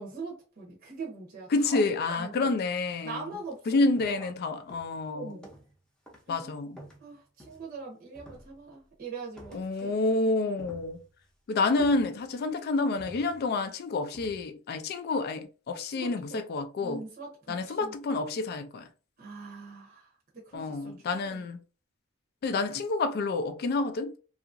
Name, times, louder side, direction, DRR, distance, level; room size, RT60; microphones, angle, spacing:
voice 1, 0.0-1.8 2.1-2.5 3.0-4.3 5.1-5.5 6.3-6.5 7.0-9.9 16.0-16.4 16.8-17.9 19.2-21.4, right 4 dB, 45° right, 0.7 m, -42 dB
voice 2, 1.5-3.2 3.7-5.4 6.3-6.8 9.5-11.0 11.5-17.0 17.5-18.9 20.5-21.6 22.4-24.1, left 3 dB, 50° left, 0.3 m, -29 dB
sound 1, 3.3-3.5 4.0-4.4 4.7-5.8 6.1-6.4 6.8-7.8 8.1-8.9 9.4-10.0 10.3-11.3 11.8-12.5 13.0-13.7 14.1-14.5, equal, 5° left, 0.6 m, -51 dB
2.8 x 2.4 x 2.5 m
head